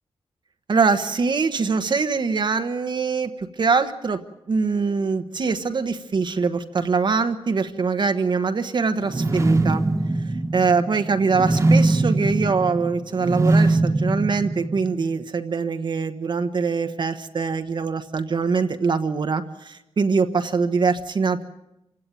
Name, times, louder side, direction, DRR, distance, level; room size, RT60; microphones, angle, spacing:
voice 1, 0.7-4.2 4.5-9.8 10.2-21.4, right 4 dB, 50° right, 8 dB, 1.2 m, -23 dB
sound 1, 9.0-15.1, right 2 dB, 30° right, 1.6 m, -21 dB
27.5 x 16.5 x 9.1 m, 0.90 s
wide cardioid pair, 140°, 10 cm